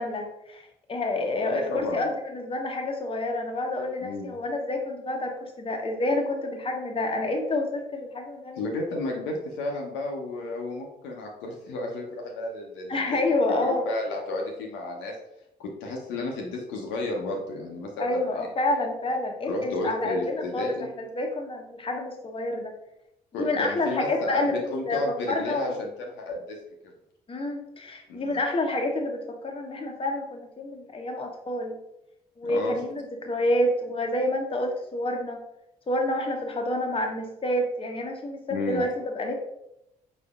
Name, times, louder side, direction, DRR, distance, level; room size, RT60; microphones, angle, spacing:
voice 1, 0.0-8.6 12.9-13.9 18.0-22.7 23.4-25.0 25.3-25.8 27.3-31.8 32.4-35.4 35.9-39.3, left 1 dB, 25° left, 2 dB, 0.9 m, -28 dB
voice 2, 1.4-2.0 4.0-4.3 8.6-13.0 13.6-15.1 15.6-18.4 19.4-20.9 23.3-26.6 28.1-28.4 32.4-32.8 38.5-38.8, left 2 dB, 65° left, 0 dB, 0.8 m, -32 dB
5.0 x 4.2 x 2.4 m, 0.83 s
figure-of-eight pair, 45°, 21 cm